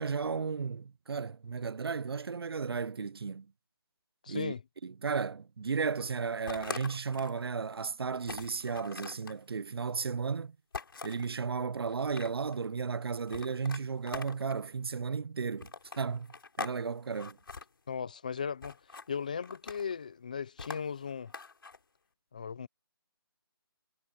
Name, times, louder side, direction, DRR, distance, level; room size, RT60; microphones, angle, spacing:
voice 1, 0.0-3.5 4.3-4.5 4.8-10.6 11.0-15.7 16.0-17.4, right 5 dB, 80° right, 0.6 m, -34 dB
voice 2, 4.2-4.6 17.9-18.8 19.1-21.3 22.3-22.7, left 6 dB, 20° left, 0.4 m, -37 dB
sound 1, 6.5-7.4 7.8-7.9 8.2-9.4 10.7-11.3 11.9-12.6 13.3-14.6 15.6-16.8 17.1-17.7 18.6-19.1 19.4-20.0 20.6-21.8, left 4 dB, 65° left, 4.1 m, -43 dB
hypercardioid pair, 175°, 13 cm